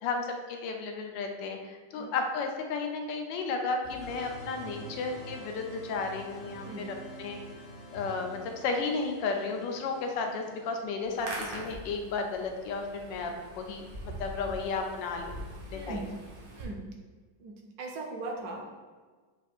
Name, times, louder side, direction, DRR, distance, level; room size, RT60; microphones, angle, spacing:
voice 1, 0.0-7.4 7.9-15.4 15.7-16.0, left 4 dB, 90° left, 3 dB, 1.3 m, -33 dB
sound 1, 3.8-9.2, equal, 70° left, 0.8 m, -49 dB
sound 2, 4.0-10.9, right 4 dB, 50° right, 0.3 m, -49 dB
Hands, 11.0-16.6, right 1 dB, 85° right, 1.7 m, -43 dB
voice 2, 15.7-16.1 16.5-16.9 17.4-18.7, right 3 dB, 70° right, 1 dB, 1.0 m, -39 dB
5.0 x 2.4 x 4.3 m, 1.4 s
omnidirectional pair, 1.9 m